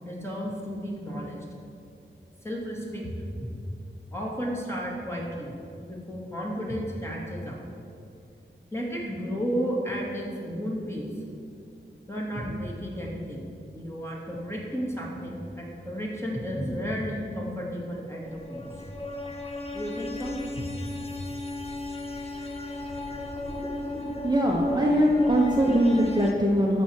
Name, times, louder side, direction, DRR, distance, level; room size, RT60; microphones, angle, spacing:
voice 1, 0.0-1.4 2.4-3.1 3.4-3.5 4.1-7.6 8.7-11.1 12.1-13.4 13.7-18.8 19.7-20.7, equal, 15° left, -3 dB, 2.4 m, -33 dB
sound 1, 18.2-26.3, left 2 dB, 30° left, 1.0 m, -35 dB
voice 2, 24.2-26.8, equal, 20° right, -2 dB, 1.1 m, -22 dB
13.0 x 4.3 x 8.2 m, 2.5 s
wide cardioid pair, 90°, 20 cm